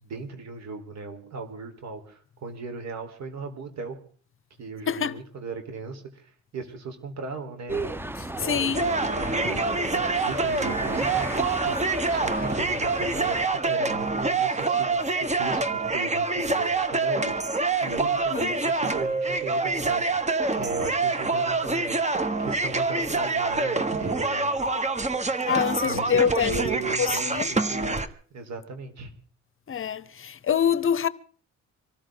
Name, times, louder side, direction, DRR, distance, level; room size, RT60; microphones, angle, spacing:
voice 1, 0.0-4.0 4.6-8.0 8.4-24.5 25.8-28.0 28.3-29.1, right 4 dB, 60° right, 4.4 m, -37 dB
sound 1, 7.7-13.5, right 1 dB, 5° right, 0.8 m, -34 dB
voice 2, 8.4-8.8 18.3-18.5 25.5-26.5 27.0-27.5 29.7-31.1, left 8 dB, 45° left, 0.9 m, -25 dB
sound 2, 8.7-28.1, right 3 dB, 25° right, 1.5 m, -26 dB
25.0 x 14.0 x 3.9 m
cardioid pair, 90°, 30 cm